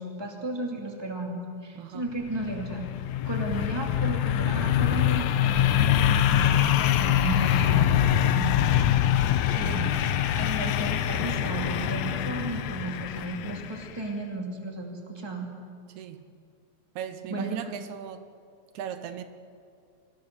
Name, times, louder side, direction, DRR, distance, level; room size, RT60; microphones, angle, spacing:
voice 1, 0.0-2.8 3.3-8.9 9.6-10.0 10.4-15.5 17.3-17.8, right 2 dB, 10° right, 1 dB, 2.2 m, -34 dB
voice 2, 1.8-2.1 8.3-8.7 16.0-16.2 17.0-18.3 18.7-19.2, right 9 dB, 85° right, 10 dB, 2.3 m, -38 dB
sound 1, 2.2-13.9, left 11 dB, 75° left, 2.0 m, -24 dB
25.0 x 16.0 x 6.9 m, 2.3 s
omnidirectional pair, 3.4 m